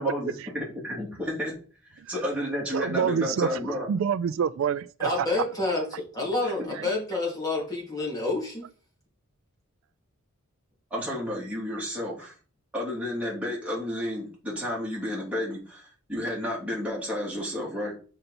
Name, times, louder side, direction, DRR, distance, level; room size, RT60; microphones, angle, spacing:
voice 1, 0.0-1.5 1.9-3.9 6.4-6.5 10.9-12.4 12.7-17.9, left 1 dB, 5° right, 3.0 m, -31 dB
voice 2, 2.7-5.3 6.7-6.9, right 7 dB, 65° right, 0.3 m, -27 dB
voice 3, 5.0-5.8 6.1-8.7, left 2 dB, 15° left, 2.9 m, -28 dB
6.6 x 5.5 x 4.3 m
head